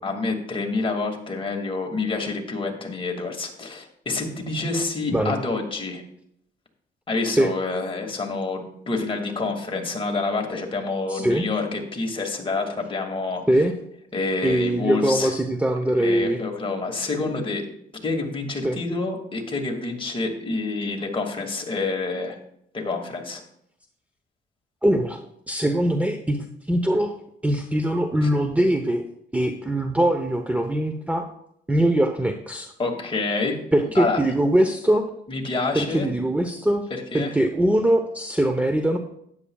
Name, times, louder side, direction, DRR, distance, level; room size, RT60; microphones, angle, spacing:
voice 1, 0.0-6.0 7.1-13.4 14.1-15.3 15.9-17.7 18.0-22.4 22.7-23.4 32.8-33.6 34.0-34.2 35.3-36.1 36.9-37.3, left 3 dB, 25° left, 2 dB, 2.2 m, -27 dB
voice 2, 11.1-11.4 13.5-13.7 14.4-16.4 18.6-18.8 24.8-25.2 25.5-27.2 27.4-29.0 29.3-31.3 31.7-32.7 33.7-35.1 35.7-36.9 37.1-39.0, right 1 dB, 5° right, 5 dB, 0.8 m, -22 dB
12.5 x 9.8 x 2.3 m, 0.72 s
cardioid pair, 90°, 20 cm